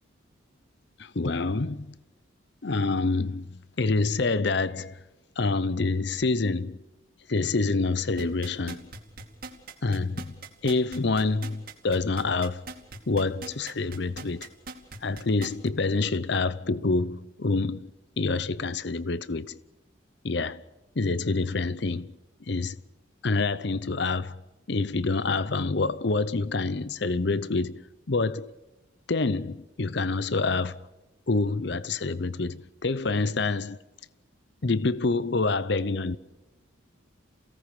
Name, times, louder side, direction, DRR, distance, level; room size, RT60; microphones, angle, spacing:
voice 1, 1.0-1.9 2.6-5.0 5.4-6.8 7.3-8.9 9.8-10.3 10.6-12.7 13.1-14.5 15.0-17.9 18.2-19.6 20.2-20.6 21.0-22.1 22.5-22.8 23.2-24.4 24.7-28.5 29.1-30.9 31.3-33.8 34.6-36.2, left 3 dB, 55° left, 0.7 m, -27 dB
sound 1, 8.2-15.7 16.1-16.2, right 3 dB, 45° right, 2.7 m, -41 dB
29.0 x 17.5 x 6.8 m
head